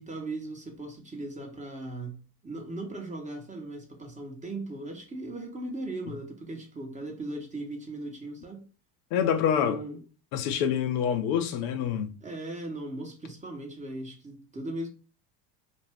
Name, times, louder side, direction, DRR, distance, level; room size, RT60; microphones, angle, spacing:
voice 1, 0.0-8.7 9.6-10.0 12.2-14.9, right 2 dB, 15° right, 0.8 m, -38 dB
voice 2, 9.1-9.8 10.3-12.1, left 8 dB, 60° left, 0.5 m, -26 dB
2.4 x 2.1 x 3.4 m
hypercardioid pair, 75°, 48 cm